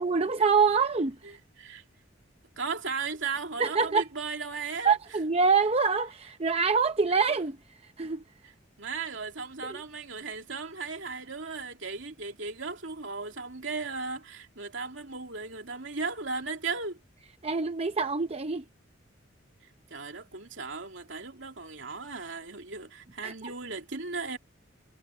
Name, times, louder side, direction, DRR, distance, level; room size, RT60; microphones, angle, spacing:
voice 1, 0.0-1.2 3.6-4.0 4.8-7.6 8.0-8.2 9.7-9.8 17.4-18.6 23.2-23.5, right 5 dB, 30° right, 0.7 m, -25 dB
voice 2, 1.2-1.8 2.6-4.9 8.8-17.0 19.9-24.4, right 4 dB, 70° right, 2.9 m, -36 dB
head